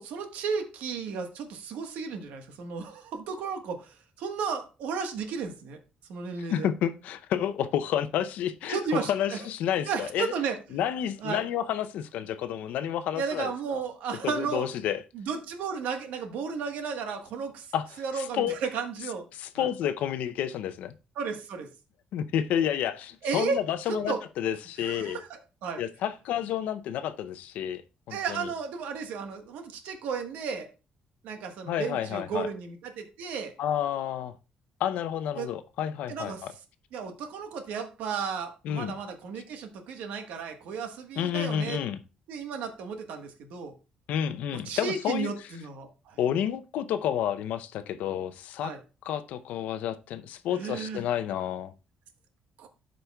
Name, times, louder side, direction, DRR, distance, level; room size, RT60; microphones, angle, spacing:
voice 1, 0.0-5.8 6.1-6.7 8.7-9.4 9.8-10.6 11.2-11.4 13.2-14.7 15.1-17.7 18.0-19.2 19.5-19.7 21.2-21.7 23.2-23.6 23.9-24.2 24.8-25.8 28.1-30.7 31.2-33.5 35.4-35.5 36.1-36.4 36.9-41.8 42.3-43.7 44.6-46.5 48.6-48.8 50.5-51.0 52.6-52.7, right 5 dB, 90° right, 1.3 m, -34 dB
voice 2, 6.5-8.8 9.1-10.3 10.7-13.8 14.2-15.0 17.7-18.6 19.4-20.9 22.1-25.2 25.8-27.8 28.1-28.5 31.7-32.5 33.6-34.3 34.8-36.5 38.6-38.9 41.2-42.0 44.1-45.3 46.2-48.7 49.1-51.7, left 10 dB, 80° left, 0.6 m, -30 dB
12.5 x 5.2 x 2.3 m
cardioid pair, 135°, 3 cm